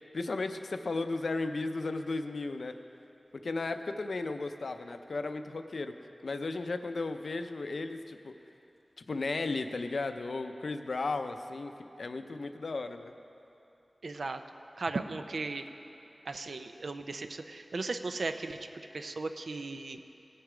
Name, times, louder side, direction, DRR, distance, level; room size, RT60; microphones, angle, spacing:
voice 1, 0.1-2.7 3.3-5.9 6.2-8.3 9.1-11.7 12.0-13.1, left 3 dB, 75° left, 8 dB, 0.5 m, -35 dB
voice 2, 14.0-14.4 14.8-15.7 16.3-18.6 18.9-20.0, right 3 dB, 80° right, 7 dB, 0.5 m, -36 dB
17.5 x 6.5 x 4.9 m, 2.9 s
wide cardioid pair, 90°, 0 cm